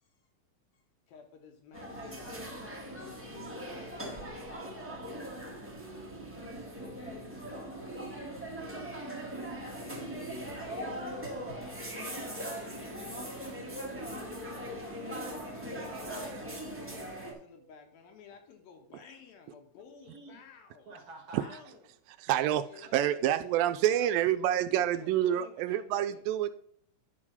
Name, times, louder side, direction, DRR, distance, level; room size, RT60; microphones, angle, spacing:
voice 1, 0.7-3.6 6.7-7.8 10.6-21.0 21.4-21.9 22.7-24.2 24.5-26.2, left 6 dB, 80° left, 5 dB, 3.1 m, -54 dB
sound 1, 1.7-17.3, right 1 dB, 5° right, 0.9 m, -40 dB
voice 2, 4.4-4.8 6.5-6.8 8.5-8.8 20.0-20.4 20.9-21.6, right 2 dB, 55° right, 3 dB, 1.9 m, -50 dB
voice 3, 22.2-26.5, right 11 dB, 80° right, 10 dB, 2.2 m, -28 dB
10.5 x 4.9 x 5.6 m, 0.65 s
omnidirectional pair, 4.2 m